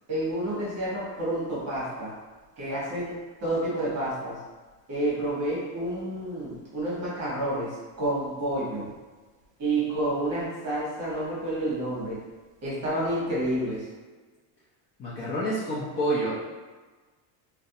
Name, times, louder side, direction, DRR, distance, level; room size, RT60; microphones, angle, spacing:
voice 1, 0.1-2.1 2.6-4.4 4.9-7.7 8.0-8.9 9.6-12.2 12.6-13.8, right 1 dB, 35° right, -7 dB, 1.0 m, -29 dB
voice 2, 15.0-16.3, right 1 dB, 30° left, -9 dB, 0.5 m, -28 dB
2.5 x 2.1 x 2.7 m, 1.3 s
cardioid pair, 150°, 47 cm